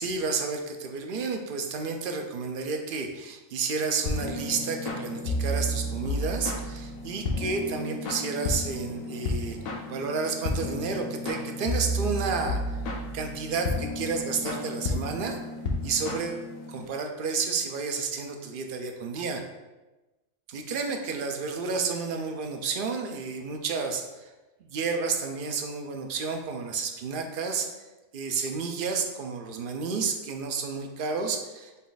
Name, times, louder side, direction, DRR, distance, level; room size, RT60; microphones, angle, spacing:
voice 1, 0.0-9.6 9.9-12.8 13.1-15.4 15.8-16.4 16.7-19.4 20.5-24.3 24.6-27.7 28.1-31.9, right 4 dB, 60° right, 4 dB, 0.5 m, -31 dB
sound 1, 4.1-16.9, left 1 dB, 85° left, 1.1 m, -32 dB
5.4 x 2.5 x 3.9 m, 1.1 s
omnidirectional pair, 1.4 m